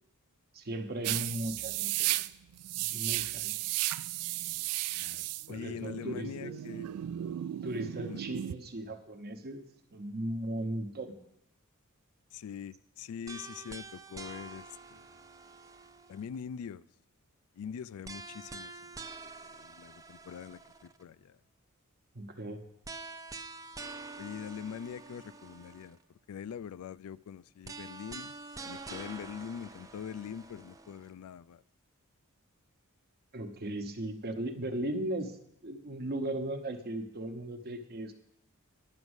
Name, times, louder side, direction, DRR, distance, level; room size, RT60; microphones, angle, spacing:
voice 1, 0.5-2.2 2.9-3.6 5.5-6.6 7.6-11.2 22.1-22.6 33.3-35.4 35.6-38.1, right 1 dB, 45° right, 1.0 m, -37 dB
sound 1, 1.0-8.5, right 15 dB, 85° right, 0.3 m, -34 dB
voice 2, 4.9-6.9 8.1-8.2 12.3-14.6 14.9-15.2 16.1-16.8 17.5-19.0 19.2-21.4 24.2-26.0 26.3-28.3 28.6-31.6, left 7 dB, 70° left, 0.3 m, -43 dB
sound 2, 13.3-16.4 18.0-21.0 22.8-26.0 27.6-31.1, right 3 dB, 15° right, 0.5 m, -47 dB
10.5 x 6.2 x 8.0 m
head